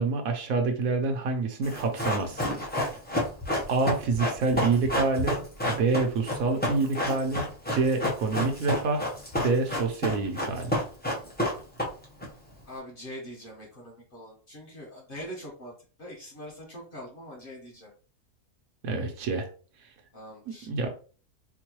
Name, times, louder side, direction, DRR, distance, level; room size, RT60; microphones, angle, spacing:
voice 1, 0.0-2.4 3.7-9.1 9.3-10.7 18.8-19.5 20.7-20.9, right 3 dB, 75° right, 4 dB, 1.1 m, -27 dB
Run, 1.6-12.2 12.5-12.6, left 1 dB, 10° left, 0.5 m, -29 dB
voice 2, 12.7-15.7 16.0-17.9 20.1-20.7, equal, 40° left, -3 dB, 1.2 m, -43 dB
4.5 x 2.2 x 2.9 m, 0.39 s
omnidirectional pair, 1.5 m